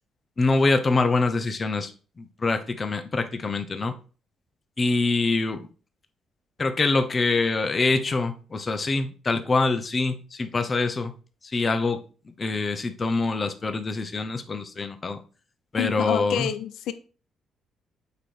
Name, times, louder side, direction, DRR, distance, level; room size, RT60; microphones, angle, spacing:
voice 1, 0.4-1.9 2.2-4.0 4.8-5.7 6.6-11.1 11.5-12.0 12.4-15.2 15.7-16.5, left 3 dB, 35° left, 0.9 m, -25 dB
voice 2, 15.8-16.9, left 10 dB, 85° left, 0.6 m, -28 dB
8.4 x 3.1 x 4.3 m
cardioid pair, 90°, 0 cm